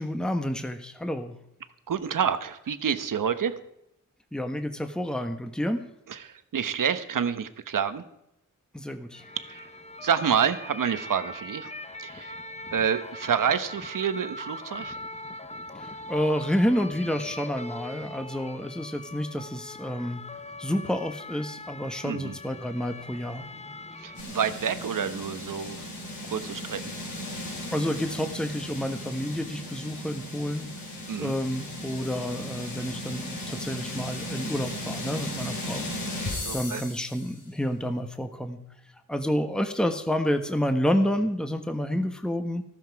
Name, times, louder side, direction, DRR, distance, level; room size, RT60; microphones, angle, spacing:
voice 1, 0.0-1.4 4.3-5.9 8.7-9.3 15.8-20.3 20.6-23.4 27.7-30.7 31.2-35.9 36.5-38.6 39.1-42.6, equal, ahead, 7 dB, 1.3 m, -29 dB
voice 2, 1.9-3.6 6.1-8.0 9.5-9.7 10.0-11.7 12.0-12.4 12.7-15.0 22.0-22.4 24.0-25.8 26.3-27.0 31.1-31.3 36.4-36.8, right 7 dB, 75° right, 11 dB, 1.1 m, -28 dB
sound 1, 9.1-24.2, left 1 dB, 20° left, 0.9 m, -41 dB
sound 2, 24.1-37.4, left 1 dB, 85° left, 5.3 m, -36 dB
14.0 x 13.5 x 4.8 m, 0.81 s
cardioid pair, 75°, 32 cm